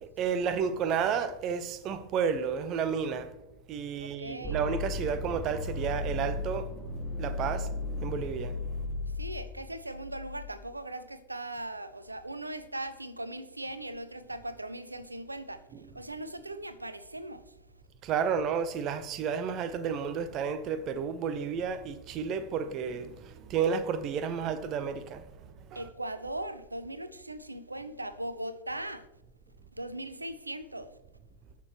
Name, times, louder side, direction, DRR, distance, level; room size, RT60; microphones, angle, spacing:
voice 1, 0.0-3.3 3.7-6.7 7.2-7.7 8.0-8.5 15.7-15.9 18.0-25.2 25.7-25.9, right 6 dB, 35° right, 0.9 m, -31 dB
voice 2, 4.0-4.6 9.2-15.6 15.9-17.5 25.7-29.0 29.8-30.9, right 1 dB, 85° right, 0.6 m, -39 dB
sound 1, 4.4-10.4, left 2 dB, 10° left, 2.9 m, -35 dB
19.5 x 6.7 x 3.0 m
figure-of-eight pair, 90°, 0 cm